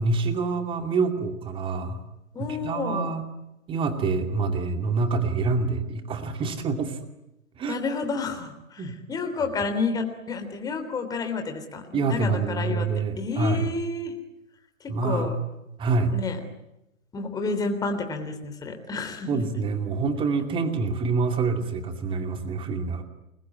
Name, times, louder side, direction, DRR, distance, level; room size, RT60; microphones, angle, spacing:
voice 1, 0.0-2.0 2.4-3.2 3.7-7.0 7.6-7.8 8.8-9.0 11.9-13.7 14.9-15.3 15.8-16.1 19.3-23.0, right 4 dB, 10° right, 7 dB, 2.5 m, -26 dB
voice 2, 2.3-3.1 7.7-12.9 13.2-14.1 15.0-15.4 16.1-16.4 17.1-19.3, left 4 dB, 10° left, 6 dB, 3.2 m, -30 dB
29.0 x 21.5 x 9.6 m, 0.91 s
figure-of-eight pair, 125°, 40 cm